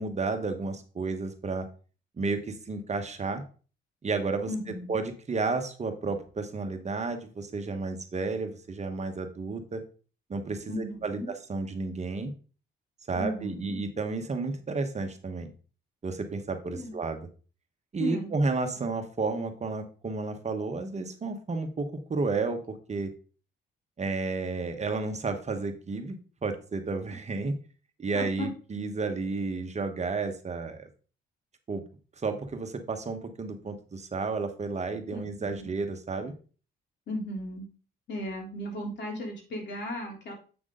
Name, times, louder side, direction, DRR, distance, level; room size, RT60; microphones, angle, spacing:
voice 1, 0.0-1.7 2.2-3.4 4.0-4.5 4.9-9.8 10.3-12.3 13.1-15.5 16.0-17.3 17.9-23.1 24.0-27.6 28.0-30.9 31.7-31.8 32.2-36.3, right 3 dB, 35° right, 6 dB, 1.2 m, -32 dB
voice 2, 4.5-5.0 10.7-11.3 13.1-13.8 16.7-17.0 18.0-18.3 28.1-28.5 35.1-35.7 37.1-37.7 38.1-40.3, left 1 dB, 60° left, -1 dB, 3.6 m, -36 dB
7.9 x 6.0 x 3.8 m, 0.37 s
cardioid pair, 90°, 20 cm